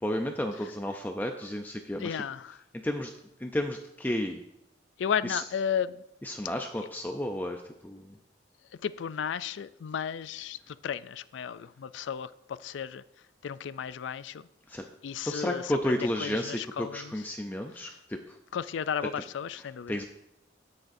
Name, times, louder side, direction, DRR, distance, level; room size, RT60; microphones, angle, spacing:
voice 1, 0.0-2.2 2.8-3.1 3.4-4.4 5.2-5.4 6.2-8.2 14.7-14.9 15.2-18.4 19.9-20.0, left 1 dB, 10° left, 0.4 m, -32 dB
voice 2, 2.0-2.6 5.0-6.0 8.7-13.0 13.4-14.5 15.0-17.2 17.8-18.0 18.5-20.0, left 7 dB, 75° left, 0.3 m, -34 dB
16.5 x 6.5 x 2.7 m
head